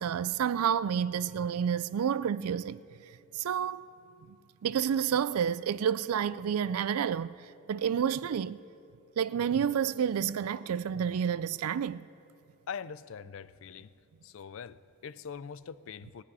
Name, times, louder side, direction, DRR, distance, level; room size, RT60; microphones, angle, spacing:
voice 1, 0.0-2.8 3.3-3.9 4.3-4.4 4.6-7.4 7.7-8.6 9.2-12.1, right 8 dB, 80° right, 0.4 m, -29 dB
voice 2, 12.7-13.9 14.2-16.2, left 6 dB, 65° left, 0.4 m, -42 dB
18.0 x 6.3 x 9.5 m
head